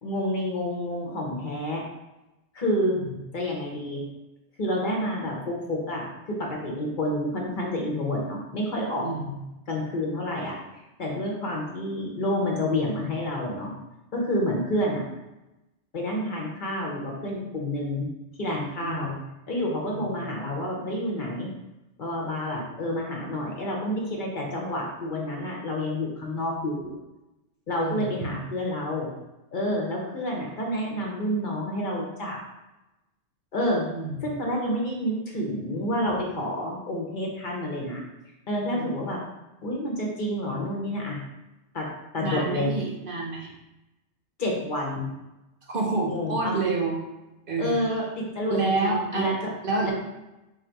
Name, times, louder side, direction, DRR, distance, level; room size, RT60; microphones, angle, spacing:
voice 1, 0.0-1.8 2.5-3.0 3.3-4.0 4.6-9.1 9.7-10.5 11.0-13.7 14.1-15.0 15.9-18.1 18.4-19.1 19.5-21.5 22.0-27.0 27.7-29.1 29.5-32.4 33.5-33.9 34.2-38.0 38.5-39.2 39.6-41.2 41.7-41.9 42.1-42.7 44.4-45.1 46.1-46.6 47.6-49.3 49.8-49.9, left 1 dB, 50° left, -2 dB, 1.0 m, -29 dB
voice 2, 9.0-9.3 18.8-19.1 19.8-20.1 27.8-28.3 33.9-34.3 38.7-38.8 42.2-43.5 45.7-47.0 47.5-47.8 48.5-49.3 49.6-49.9, right 3 dB, 55° right, -1 dB, 0.9 m, -28 dB
3.9 x 2.6 x 4.5 m, 0.97 s
omnidirectional pair, 1.1 m